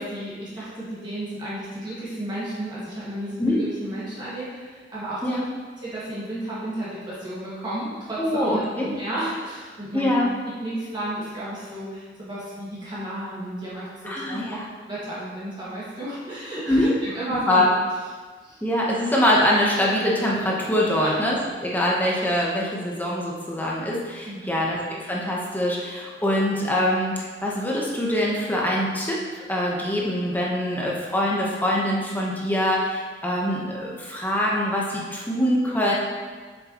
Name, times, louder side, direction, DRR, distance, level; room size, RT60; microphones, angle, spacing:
voice 1, 0.0-5.4 5.8-10.1 10.6-14.6 14.9-17.7 18.4-18.6 20.9-21.1 24.3-24.6, right 1 dB, 25° right, -10 dB, 1.8 m, -33 dB
voice 2, 8.2-8.9 9.9-10.3 14.0-14.6 16.7-16.9 17.3-17.7 18.6-29.2 29.5-35.9, left 1 dB, 10° left, -4 dB, 1.0 m, -24 dB
7.5 x 6.6 x 3.0 m, 1.5 s
head